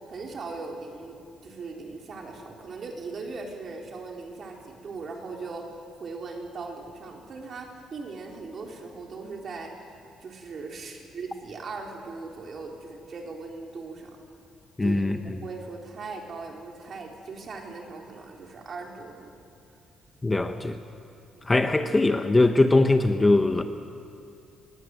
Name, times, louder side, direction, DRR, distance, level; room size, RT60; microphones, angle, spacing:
voice 1, 0.0-9.8 10.2-14.2 14.8-15.1 15.4-19.3 21.3-21.5, right 4 dB, 40° right, 1 dB, 4.2 m, -39 dB
voice 2, 14.8-15.2 20.2-20.8 21.5-23.6, left 2 dB, 15° left, 7 dB, 1.0 m, -21 dB
29.5 x 21.0 x 7.9 m, 2.5 s
cardioid pair, 140°, 0 cm